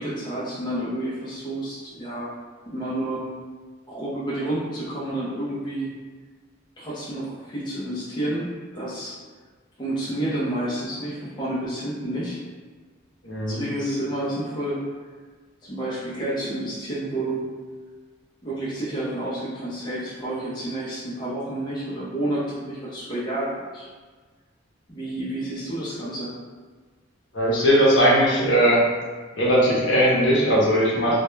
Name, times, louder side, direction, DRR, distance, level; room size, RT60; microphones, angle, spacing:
voice 1, 0.0-2.3 2.7-3.3 3.9-5.9 6.8-9.2 9.8-12.4 13.5-14.8 15.6-17.5 18.4-23.9 24.9-26.3, right 1 dB, 20° left, -8 dB, 0.5 m, -30 dB
voice 2, 13.2-13.6 27.3-28.8 29.4-31.2, equal, 65° left, -5 dB, 0.7 m, -19 dB
2.2 x 2.1 x 3.0 m, 1.4 s
head